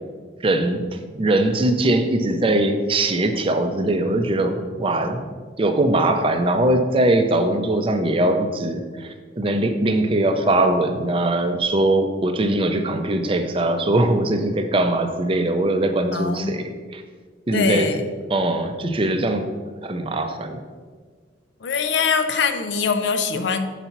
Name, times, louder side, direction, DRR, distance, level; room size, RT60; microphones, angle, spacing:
voice 1, 0.4-0.9 1.1-5.3 5.6-17.0 17.5-17.9 18.3-19.5 19.8-20.6, right 1 dB, 30° right, 6 dB, 0.5 m, -21 dB
voice 2, 16.1-16.5 17.5-18.0 21.6-23.7, left 5 dB, 70° left, 8 dB, 0.5 m, -22 dB
5.7 x 4.1 x 5.8 m, 1.5 s
head